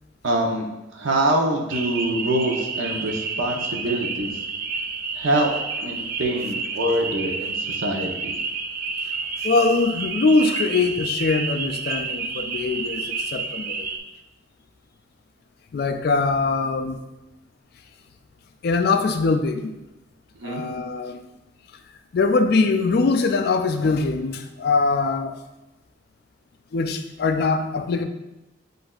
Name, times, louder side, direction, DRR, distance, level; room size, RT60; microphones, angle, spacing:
voice 1, 0.2-0.7 0.9-4.3 5.1-5.5 5.8-8.3 20.4-20.6, right 1 dB, 85° right, 1 dB, 0.7 m, -24 dB
sound 1, 1.7-14.0, right 4 dB, 50° right, 0.3 m, -30 dB
voice 2, 9.4-13.9 15.7-17.0 18.6-19.8 20.4-21.3 22.1-25.4 26.7-28.0, left 3 dB, 55° left, 7 dB, 0.3 m, -22 dB
7.6 x 2.5 x 2.3 m, 0.97 s
head